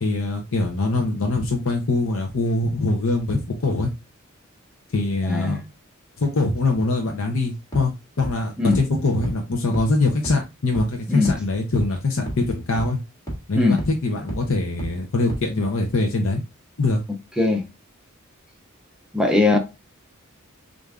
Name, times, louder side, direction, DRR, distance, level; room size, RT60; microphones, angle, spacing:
voice 1, 0.0-3.9 4.9-5.6 6.2-13.0 13.5-16.4 16.8-17.0, left 2 dB, 65° left, 0.7 m, -23 dB
voice 2, 5.2-5.6 8.6-8.8 11.1-11.3 13.5-13.8 17.4-17.6 19.1-19.6, left 3 dB, 5° right, 0.6 m, -19 dB
sound 1, 7.7-7.8 8.2-8.3 8.7-8.8 9.2-9.3 9.7-9.8 10.2-10.3 10.7-10.8 11.2-11.3 11.7-11.8 12.3-12.4 12.8-12.9 13.3-13.4 13.8-13.9 14.3-14.4 14.8-14.9 15.3-15.4, right 1 dB, 20° left, 1.9 m, -29 dB
6.5 x 2.6 x 2.4 m
head